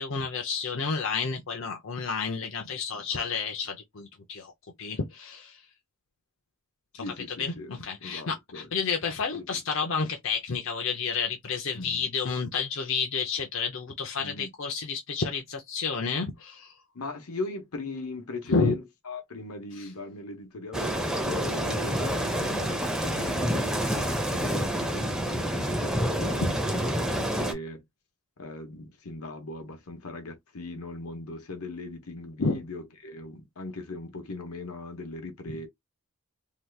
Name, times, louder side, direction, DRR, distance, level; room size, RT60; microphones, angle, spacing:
voice 1, 0.0-4.5 4.8-5.6 6.9-7.0 7.4-16.7 18.5-18.7 26.4-26.6 32.4-32.6, left 5 dB, 60° left, 0.6 m, -30 dB
voice 2, 2.9-3.3 7.0-7.7 8.0-8.7 9.3-9.5 11.7-12.1 14.2-14.5 16.9-27.8 28.4-35.7, left 3 dB, 85° left, 1.0 m, -39 dB
sound 1, 20.7-27.5, equal, 5° right, 0.5 m, -28 dB
2.8 x 2.3 x 3.3 m
head